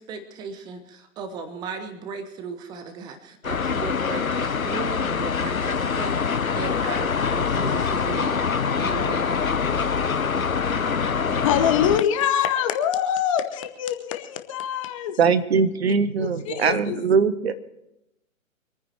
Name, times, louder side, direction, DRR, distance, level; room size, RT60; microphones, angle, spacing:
voice 1, 0.0-9.5, right 5 dB, 10° right, 8 dB, 1.0 m, -36 dB
sound 1, 3.4-12.0, left 6 dB, 80° left, 0.9 m, -24 dB
voice 2, 11.4-15.3 16.2-17.0, left 9 dB, 25° left, 8 dB, 1.0 m, -24 dB
voice 3, 15.2-17.5, right 5 dB, 50° right, 11 dB, 1.3 m, -21 dB
25.0 x 9.7 x 4.4 m, 0.85 s
figure-of-eight pair, 130°, 41 cm